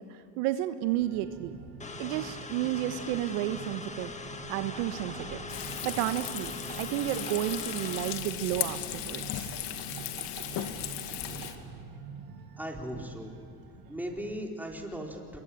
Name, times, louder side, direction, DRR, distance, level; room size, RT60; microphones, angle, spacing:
voice 1, 0.0-1.6 2.0-4.1 4.5-5.4 5.8-9.5, right 13 dB, 80° right, 9 dB, 1.4 m, -32 dB
sound 1, 0.9-14.3, right 5 dB, 50° right, 7.6 m, -46 dB
sound 2, 1.8-8.1, left 3 dB, 15° left, 1.8 m, -42 dB
Frying (food), 5.5-11.5, left 12 dB, 60° left, 2.2 m, -37 dB
voice 2, 12.6-13.3 13.9-15.4, equal, 5° right, 0 dB, 4.5 m, -38 dB
27.0 x 22.5 x 8.8 m, 2.2 s
supercardioid pair, 110°, 46 cm